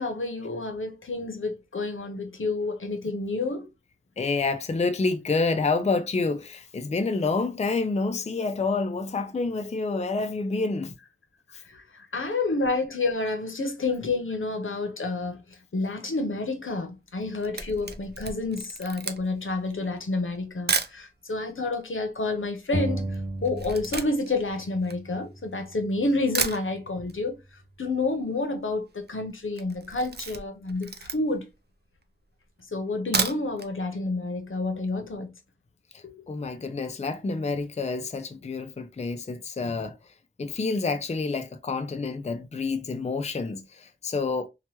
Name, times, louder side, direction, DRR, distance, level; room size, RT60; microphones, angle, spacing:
voice 1, 0.0-3.7 11.7-11.8 12.1-15.4 15.7-23.1 23.4-27.4 27.8-31.5 32.7-35.3 36.0-36.1, left 3 dB, 80° left, 0.7 m, -29 dB
voice 2, 4.2-10.9 11.5-11.6 35.9-40.0 40.4-44.5, left 3 dB, 35° left, 0.4 m, -28 dB
Camera, 17.2-21.0 21.7-21.8 22.0-25.7 26.0-26.1 26.3-27.2 27.5-27.6 27.9-28.0 28.1-28.6 28.9-29.1 29.5-31.5 32.0-32.1 32.9-33.7 34.1-34.2 34.5-34.6, right 4 dB, 55° right, 0.5 m, -32 dB
sound 1, 22.7-24.2 24.5-26.3, right 1 dB, 25° right, 0.9 m, -34 dB
2.9 x 2.2 x 2.9 m
wide cardioid pair, 40°, 20 cm